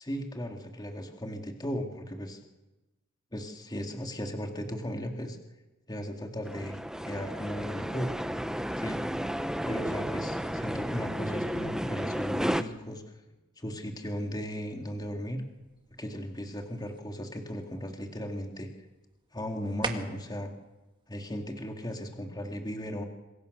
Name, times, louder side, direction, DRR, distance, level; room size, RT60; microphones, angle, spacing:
voice 1, 0.0-2.4 3.3-5.4 5.9-8.1 8.8-9.0 9.6-13.0 13.6-15.4 16.0-18.7 19.3-20.5 21.1-23.0, equal, 20° left, 3 dB, 2.3 m, -36 dB
sound 1, 6.4-12.6, equal, 5° right, 0.9 m, -33 dB
sound 2, 14.2-22.2, right 3 dB, 25° right, 2.0 m, -45 dB
27.5 x 22.5 x 6.7 m, 1.1 s
head